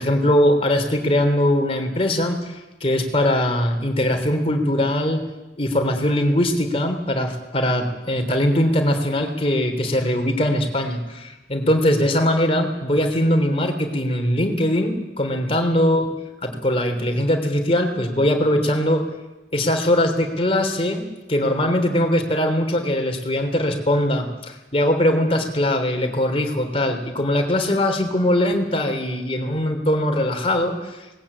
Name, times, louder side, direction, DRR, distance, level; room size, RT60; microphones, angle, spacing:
voice 1, 0.0-5.2 5.6-16.1 16.4-19.1 19.5-30.7, left 1 dB, 30° left, 5 dB, 3.3 m, -21 dB
20.5 x 20.0 x 8.7 m, 1.1 s
head